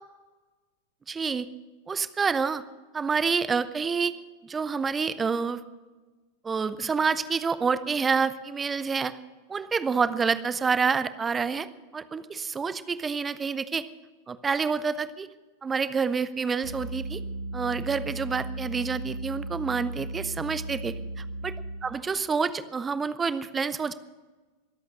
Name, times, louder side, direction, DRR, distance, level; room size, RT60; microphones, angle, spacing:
voice 1, 1.1-1.5 1.9-2.6 2.9-4.1 4.4-5.6 6.4-9.1 9.5-11.7 11.9-13.8 14.3-15.3 15.6-17.2 17.5-20.9 21.4-21.5 21.8-23.9, right 5 dB, 15° right, 14 dB, 0.8 m, -28 dB
sound 1, 16.6-21.9, right 2 dB, 80° right, 5.1 m, -36 dB
23.5 x 8.4 x 6.3 m, 1.3 s
figure-of-eight pair, 90°, 0 cm